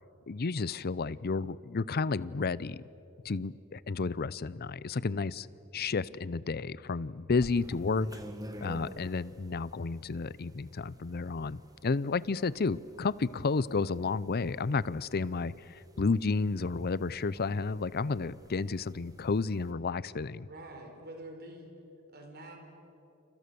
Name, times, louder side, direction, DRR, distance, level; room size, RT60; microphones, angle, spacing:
voice 1, 0.3-2.8 3.2-5.5 5.7-8.2 8.6-20.5, left 4 dB, 45° left, 19 dB, 0.6 m, -31 dB
sound 1, 7.4-19.7, equal, 15° right, 1.8 m, -50 dB
voice 2, 20.4-21.7 22.1-22.6, right 1 dB, 50° right, 4 dB, 4.4 m, -46 dB
29.5 x 28.5 x 6.9 m, 2.9 s
head